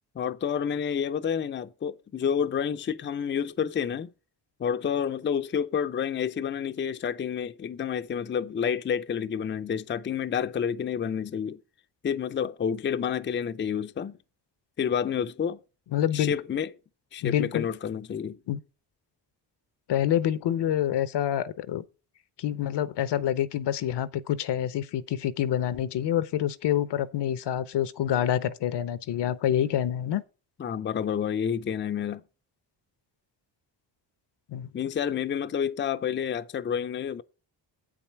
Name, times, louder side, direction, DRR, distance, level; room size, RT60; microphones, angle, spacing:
voice 1, 0.2-4.1 4.6-11.6 12.0-14.2 14.8-15.6 16.1-16.7 17.1-18.4 30.6-32.2 34.7-37.2, left 7 dB, 25° left, 0.5 m, -29 dB
voice 2, 15.9-16.3 17.2-17.7 18.5-18.6 19.9-21.8 22.4-30.2 34.5-34.7, left 11 dB, 65° left, 0.7 m, -27 dB
8.1 x 7.4 x 4.5 m
cardioid pair, 90°, 45 cm